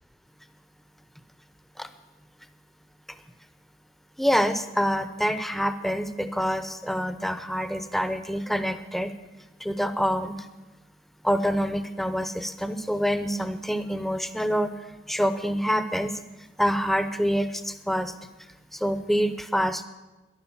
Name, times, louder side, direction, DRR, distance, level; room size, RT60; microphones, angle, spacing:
voice 1, 4.2-9.1 9.6-10.5 11.2-14.7 15.1-16.1 16.6-18.1 18.7-19.8, equal, ahead, 10 dB, 0.7 m, -26 dB
14.0 x 11.0 x 7.2 m, 1.1 s
head